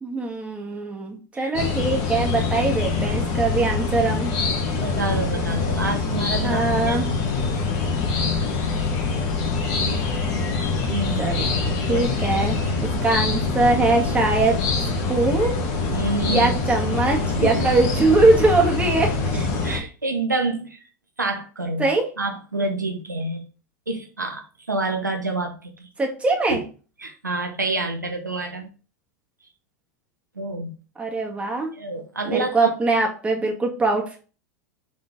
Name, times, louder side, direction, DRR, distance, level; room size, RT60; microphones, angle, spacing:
voice 1, 0.0-4.3 6.4-7.1 11.2-11.6 11.9-14.6 15.1-15.6 16.3-19.5 21.8-22.1 26.0-26.6 31.0-31.7 32.3-34.2, right 3 dB, 15° right, 0 dB, 1.8 m, -22 dB
sound 1, 1.5-19.8, left 4 dB, 45° left, 1.4 m, -24 dB
voice 2, 4.8-7.5 10.9-11.3 11.9-12.2 15.9-16.5 17.4-17.7 19.6-20.8 21.2-21.9 22.2-23.4 23.9-25.9 26.5-26.6 27.0-28.7 30.4-30.7 31.8-32.7, right 2 dB, 85° right, 4 dB, 1.0 m, -28 dB
7.0 x 3.8 x 3.8 m, 0.35 s
figure-of-eight pair, 85°, 10 cm